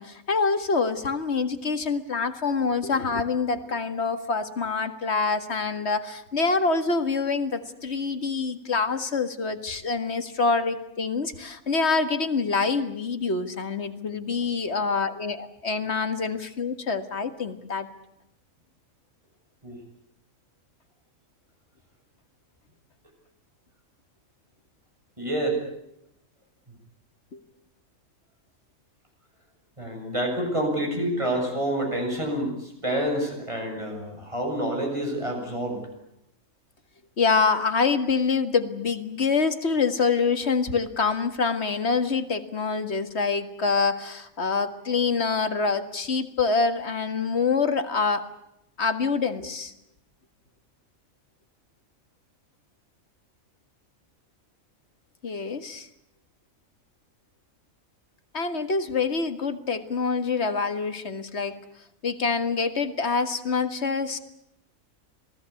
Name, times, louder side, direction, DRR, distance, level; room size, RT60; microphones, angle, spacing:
voice 1, 0.0-17.9 27.3-27.4 37.2-48.2 48.8-49.7 55.2-55.9 58.3-61.6 62.0-64.2, left 4 dB, 55° left, 9 dB, 2.1 m, -26 dB
voice 2, 25.2-25.6 29.8-35.8, right 1 dB, 20° right, 2 dB, 7.6 m, -28 dB
27.5 x 19.0 x 8.5 m, 0.83 s
omnidirectional pair, 1.4 m